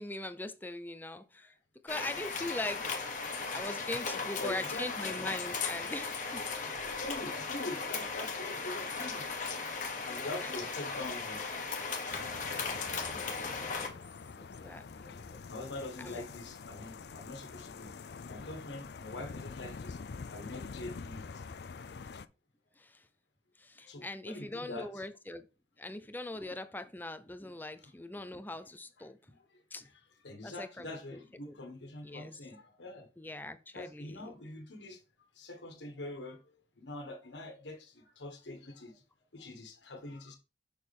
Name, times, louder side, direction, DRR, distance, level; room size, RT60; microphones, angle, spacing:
voice 1, 0.0-1.5 1.8-2.9 3.5-6.4 10.4-10.5 13.1-13.9 14.6-15.2 16.0-16.2 22.8-23.0 23.6-25.4 25.8-29.2 29.7-29.9 30.4-31.2 31.5-31.6 32.0-32.3 33.2-34.3, left 2 dB, 10° left, 0.6 m, -41 dB
sound 1, 1.9-13.9, left 4 dB, 45° left, 1.4 m, -37 dB
voice 2, 4.1-5.3 6.6-9.3 10.0-11.5 15.0-15.1 15.5-17.9 18.3-20.0 20.3-21.2 23.9-24.9 29.0-29.1 30.2-33.1 33.7-35.0 35.4-36.4 36.8-38.9 39.3-40.4, left 2 dB, 90° left, 1.6 m, -44 dB
sound 2, 12.1-22.3, left 5 dB, 65° left, 0.4 m, -46 dB
6.6 x 6.3 x 3.6 m
head